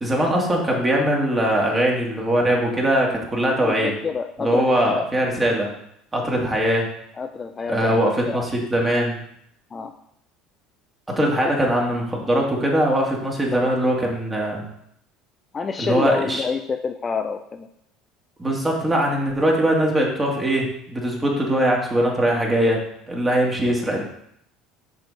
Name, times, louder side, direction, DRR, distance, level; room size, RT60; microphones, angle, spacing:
voice 1, 0.0-3.9 4.4-5.7 6.1-6.9 7.7-9.2 11.1-14.6 15.8-16.4 18.4-22.8 23.1-24.0, right 1 dB, 20° right, -1 dB, 2.0 m, -21 dB
voice 2, 3.6-5.1 7.2-8.0 8.3-8.5 9.7-9.9 13.5-13.7 15.5-17.7, left 5 dB, 30° left, 6 dB, 0.5 m, -27 dB
6.6 x 4.8 x 4.1 m, 0.73 s
supercardioid pair, 95°, 0 cm